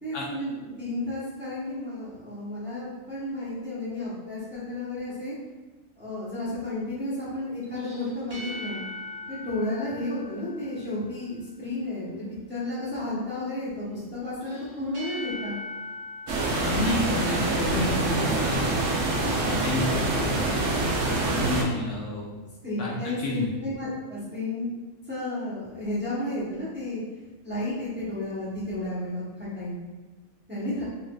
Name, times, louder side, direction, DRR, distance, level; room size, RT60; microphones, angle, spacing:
voice 1, 0.0-5.3 6.0-8.8 9.3-12.2 12.5-15.6 22.6-24.7 25.1-27.0 27.4-29.9 30.5-30.8, left 1 dB, 10° right, -10 dB, 0.7 m, -32 dB
sound 1, 7.6-11.2 14.4-17.9, left 2 dB, 50° right, 1.4 m, -41 dB
sound 2, 16.3-21.6, right 2 dB, 65° right, 0.8 m, -26 dB
voice 2, 16.6-18.7 19.3-20.5 21.3-22.2 22.8-23.5, left 2 dB, 70° left, -3 dB, 0.8 m, -30 dB
3.9 x 2.5 x 2.2 m, 1.2 s
omnidirectional pair, 1.4 m